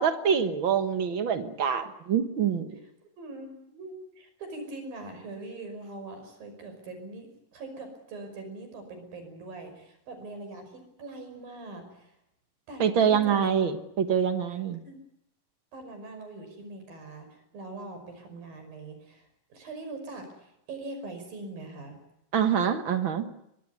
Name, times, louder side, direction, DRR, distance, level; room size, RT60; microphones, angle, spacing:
voice 1, 0.0-2.7 12.8-14.8 22.3-23.3, right 7 dB, 55° right, 9 dB, 1.5 m, -25 dB
voice 2, 3.2-12.1 12.7-13.5 14.8-15.0 15.7-22.0, right 2 dB, 90° right, 6 dB, 7.4 m, -42 dB
24.0 x 20.5 x 9.5 m, 0.80 s
omnidirectional pair, 4.0 m